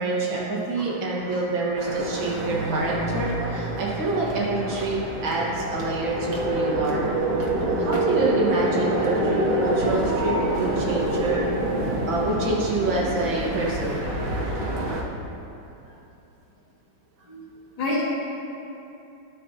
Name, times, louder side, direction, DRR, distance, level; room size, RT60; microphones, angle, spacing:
voice 1, 0.0-7.1 7.5-11.4 12.1-14.0, right 2 dB, 80° right, -5 dB, 2.4 m, -27 dB
voice 2, 0.7-0.9 1.1-1.4 17.3-17.4 17.8-18.0, left 2 dB, 75° left, -8 dB, 3.0 m, -29 dB
sound 1, 1.8-15.0, right 1 dB, 50° right, 1.3 m, -26 dB
12.5 x 7.5 x 2.9 m, 2.9 s
omnidirectional pair, 2.1 m